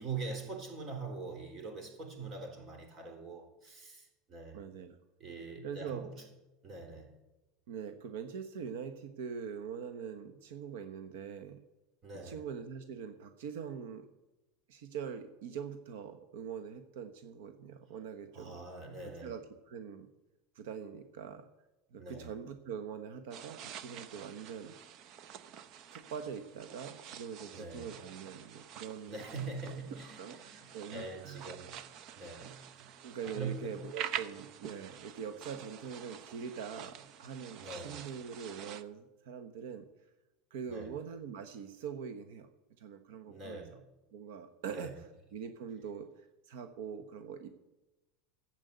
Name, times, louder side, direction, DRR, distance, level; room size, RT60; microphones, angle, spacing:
voice 1, 0.0-4.6 5.2-6.2 6.6-7.1 12.0-12.5 18.3-19.3 22.0-22.3 27.5-28.0 29.1-31.9 32.2-32.9 33.2-33.8 37.6-38.1 40.7-40.9 43.3-43.8 44.7-45.0, right 4 dB, 35° right, 4 dB, 3.8 m, -43 dB
voice 2, 4.5-5.0 5.6-6.1 7.7-11.6 12.2-14.1 14.7-18.6 19.2-20.1 20.5-21.5 21.9-24.8 25.9-29.2 29.7-29.8 30.2-31.4 33.0-39.9 40.5-42.5 42.8-43.6 44.1-44.9 45.3-47.5, right 7 dB, 85° right, 9 dB, 1.2 m, -43 dB
sound 1, 23.3-38.8, right 9 dB, 50° right, 0.9 m, -47 dB
13.0 x 8.1 x 8.1 m, 1.0 s
supercardioid pair, 130°, 0 cm